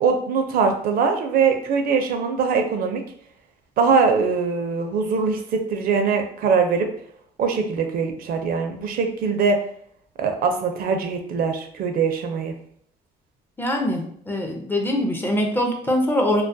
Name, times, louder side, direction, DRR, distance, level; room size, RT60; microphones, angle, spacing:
voice 1, 0.0-3.0 3.8-6.9 7.4-9.6 10.2-12.5, right 5 dB, 60° right, 5 dB, 0.4 m, -22 dB
voice 2, 13.6-16.4, left 1 dB, 10° left, 1 dB, 0.4 m, -23 dB
2.3 x 2.1 x 2.6 m, 0.64 s
cardioid pair, 110°, 17 cm